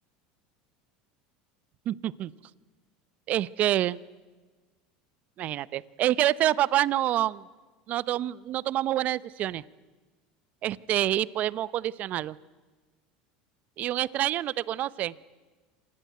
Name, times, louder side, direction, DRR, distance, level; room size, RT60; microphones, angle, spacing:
voice 1, 1.9-2.3 3.3-4.0 5.4-7.4 7.9-9.6 10.6-12.4 13.8-15.1, right 13 dB, 50° right, 20 dB, 0.8 m, -27 dB
26.0 x 19.5 x 9.4 m, 1.3 s
supercardioid pair, 105°, 3 cm